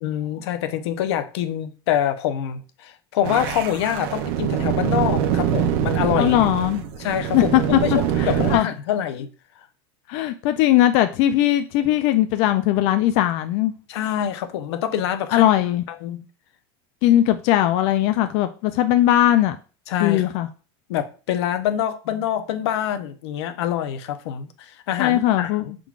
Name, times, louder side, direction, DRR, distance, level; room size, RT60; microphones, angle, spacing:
voice 1, 0.0-6.4 7.0-7.6 7.8-9.3 13.9-15.5 16.0-16.2 19.9-20.2 20.9-25.8, left 10 dB, 85° left, 0.7 m, -25 dB
sound 1, 3.2-8.6, right 9 dB, 65° right, 0.7 m, -24 dB
voice 2, 6.2-6.8 7.3-8.7 10.1-13.7 15.3-15.8 17.0-19.6 20.0-20.5 25.0-25.8, left 13 dB, 55° left, 0.4 m, -19 dB
5.8 x 3.7 x 2.4 m
supercardioid pair, 150°, 14 cm